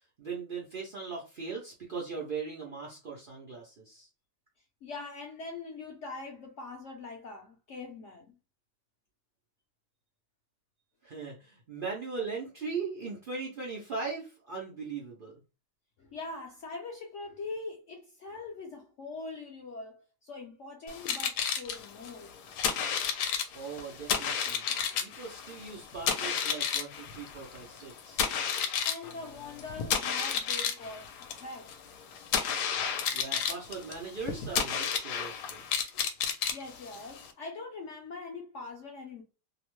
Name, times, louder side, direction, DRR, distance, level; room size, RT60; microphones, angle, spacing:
voice 1, 0.2-4.1 11.0-15.4 23.5-24.6 25.0-28.3 33.1-35.6, right 4 dB, 75° right, 0.4 m, -39 dB
voice 2, 4.8-8.3 16.0-22.3 24.8-24.9 28.8-31.7 36.5-39.2, left 3 dB, 65° left, 0.8 m, -42 dB
sound 1, 20.9-37.3, left 7 dB, 80° left, 1.1 m, -32 dB
2.8 x 2.1 x 3.0 m
omnidirectional pair, 1.8 m